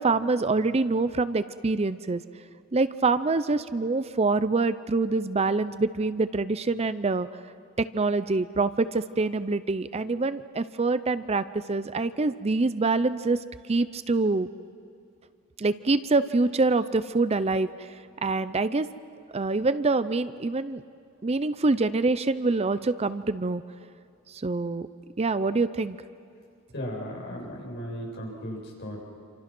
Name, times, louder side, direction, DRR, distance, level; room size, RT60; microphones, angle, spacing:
voice 1, 0.0-2.2 2.7-7.3 7.8-13.4 13.7-14.5 15.6-17.7 18.2-18.9 19.3-20.8 21.2-23.6 24.3-24.9 25.2-26.0, right 3 dB, 30° right, 13 dB, 0.5 m, -25 dB
voice 2, 26.7-29.0, equal, 55° left, -2 dB, 7.4 m, -36 dB
28.0 x 27.0 x 6.1 m, 2.5 s
head